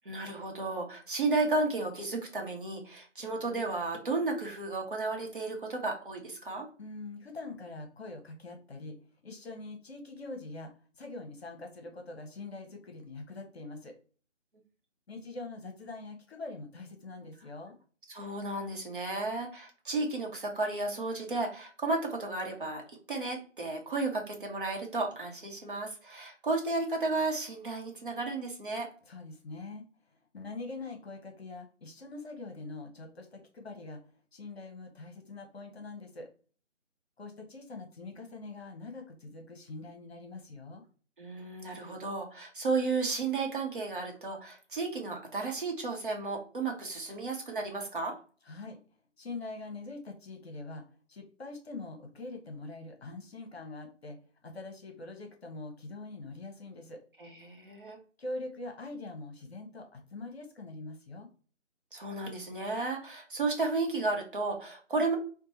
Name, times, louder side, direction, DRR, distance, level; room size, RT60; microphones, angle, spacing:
voice 1, 0.0-6.7 18.1-22.8 23.1-28.9 41.2-48.2 57.2-58.0 61.9-65.1, right 3 dB, 45° right, 1 dB, 0.9 m, -33 dB
voice 2, 6.8-14.0 15.1-17.8 29.1-29.8 30.1-34.0 34.3-36.3 37.2-40.8 48.4-48.8 49.2-57.0 58.2-61.3, left 3 dB, 55° left, 4 dB, 0.9 m, -43 dB
2.7 x 2.2 x 4.1 m, 0.39 s
figure-of-eight pair, 160°, 37 cm